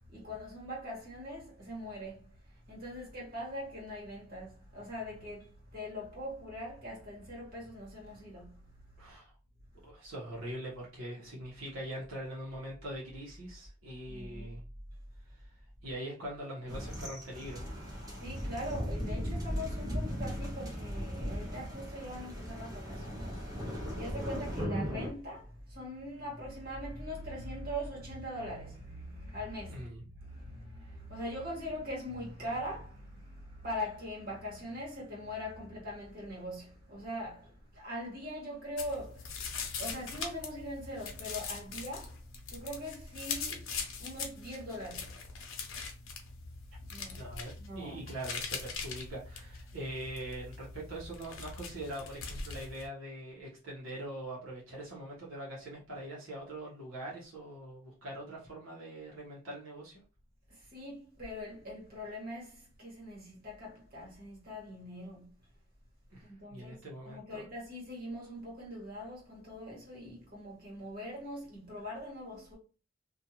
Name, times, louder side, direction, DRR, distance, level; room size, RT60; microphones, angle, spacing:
voice 1, 0.0-8.6 14.1-14.5 18.0-29.8 30.1-39.4 39.8-42.2 42.5-45.2 46.9-47.2 47.6-48.0 60.5-65.4 66.2-66.8 67.0-72.6, equal, 50° right, 1.4 m, -42 dB
voice 2, 9.0-9.3 9.8-14.6 15.4-15.6 15.8-17.7 29.7-30.1 47.2-60.0 66.1-67.4, right 1 dB, 85° right, 1.0 m, -43 dB
sound 1, 16.7-25.1, equal, 20° right, 0.8 m, -37 dB
sound 2, 38.8-52.9, left 5 dB, 90° left, 0.7 m, -42 dB
2.5 x 2.4 x 2.8 m
head